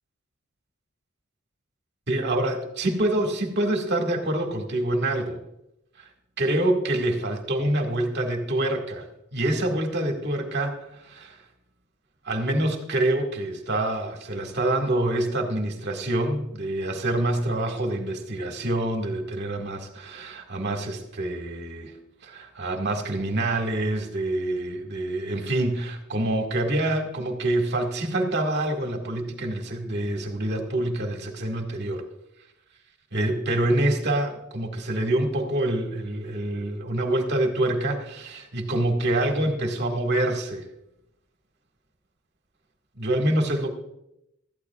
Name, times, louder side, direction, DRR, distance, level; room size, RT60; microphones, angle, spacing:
voice 1, 2.1-5.4 6.0-6.1 6.4-9.1 9.3-11.4 12.3-21.9 22.2-32.0 33.1-40.6 43.0-43.7, right 1 dB, 55° right, 3 dB, 1.9 m, -26 dB
18.0 x 13.5 x 2.4 m, 0.83 s
head